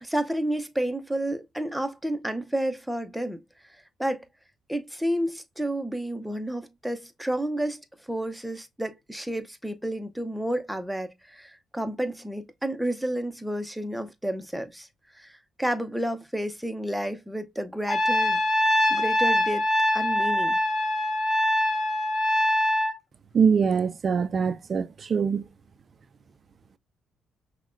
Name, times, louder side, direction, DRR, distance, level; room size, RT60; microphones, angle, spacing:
voice 1, 0.0-3.4 3.7-4.3 4.7-14.9 15.1-18.4 18.9-19.6 19.9-20.6, right 1 dB, 5° right, 0.6 m, -31 dB
Trumpet, 17.9-23.0, left 1 dB, 20° left, 2.2 m, -23 dB
voice 2, 23.3-25.4, right 6 dB, 45° right, 0.4 m, -23 dB
5.7 x 2.2 x 2.5 m
cardioid pair, 90°, 0 cm